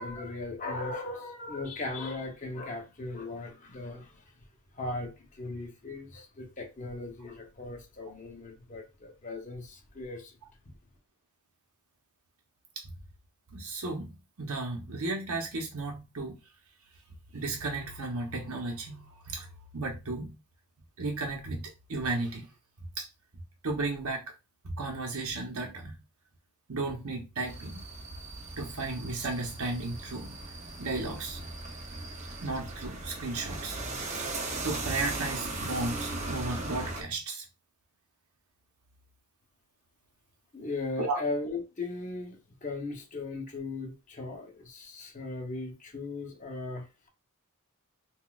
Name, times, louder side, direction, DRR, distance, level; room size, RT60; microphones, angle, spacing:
voice 1, 0.0-4.2 4.7-10.3 10.7-10.8 40.5-46.9, left 2 dB, 35° left, 0.7 m, -38 dB
voice 2, 13.5-16.4 17.3-20.4 21.0-22.5 23.0-23.1 23.6-24.2 24.6-26.0 26.7-27.8 28.6-30.4 30.8-31.5 31.9-32.0 32.4-33.8 34.2-34.4 34.6-37.4 41.0-41.2, right 3 dB, 80° right, 0.8 m, -34 dB
sound 1, 27.5-37.0, right 2 dB, 30° right, 0.6 m, -38 dB
3.9 x 2.3 x 2.3 m
head